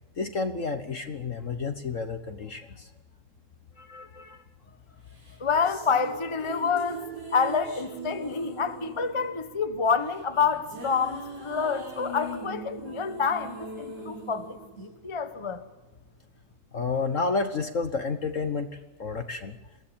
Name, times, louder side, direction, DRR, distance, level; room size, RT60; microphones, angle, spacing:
voice 1, 0.2-2.9 3.8-4.4 16.7-18.7 19.0-19.6, left 4 dB, 45° left, 1.2 m, -30 dB
sound 1, 5.1-15.6, right 2 dB, 50° right, 5.4 m, -41 dB
voice 2, 5.4-7.0 7.3-15.6, left 5 dB, 20° left, 0.9 m, -28 dB
22.0 x 16.0 x 8.8 m
omnidirectional pair, 2.3 m